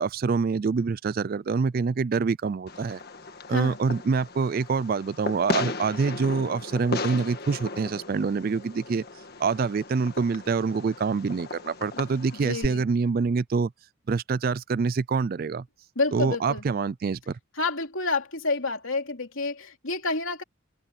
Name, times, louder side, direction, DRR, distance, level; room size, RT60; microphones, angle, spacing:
voice 1, 0.0-3.0 3.5-9.0 9.4-13.7 14.1-15.7 16.1-17.4, right 5 dB, 45° right, 0.3 m, -26 dB
Fireworks, 2.7-12.7, left 2 dB, 45° left, 1.7 m, -36 dB
voice 2, 12.4-12.9 16.0-16.6 17.6-20.4, left 3 dB, 70° left, 3.1 m, -29 dB
head